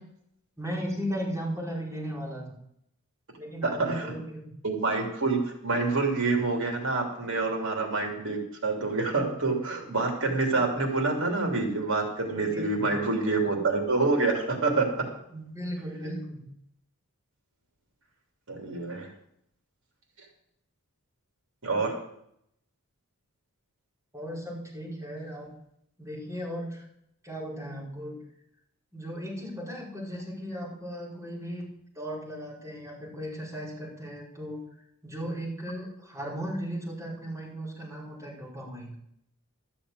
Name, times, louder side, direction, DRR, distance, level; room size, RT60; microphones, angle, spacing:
voice 1, 0.6-2.6 3.4-4.5 12.5-12.9 15.3-16.4 24.1-25.5 26.0-26.9 27.2-28.2 28.9-31.6 31.9-34.6 35.0-38.9, equal, 15° right, -5 dB, 5.4 m, -36 dB
voice 2, 3.8-4.1 4.6-14.9 16.0-16.1 18.5-19.1 21.6-22.0, right 3 dB, 60° right, 2 dB, 3.0 m, -27 dB
13.0 x 7.0 x 8.0 m, 0.73 s
head